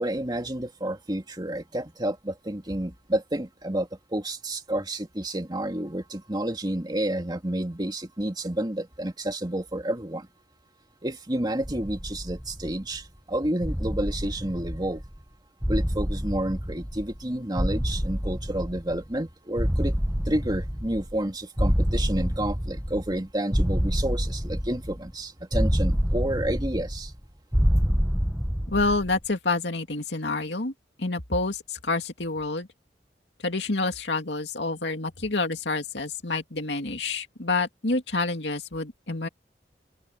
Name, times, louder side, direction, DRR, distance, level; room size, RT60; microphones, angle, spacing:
voice 1, 0.0-10.3 11.0-15.0 15.7-19.9 20.3-27.1, right 1 dB, 25° right, 2.8 m, -30 dB
sound 1, 11.6-13.0 13.6-15.2 15.6-17.2 17.6-19.2 19.6-21.2 21.6-23.2 23.5-25.1 25.5-27.2 27.5-29.2, equal, 5° right, 1.0 m, -27 dB
voice 2, 28.7-30.7 31.0-31.6 31.8-32.7 33.4-39.3, left 3 dB, 75° left, 2.7 m, -28 dB
head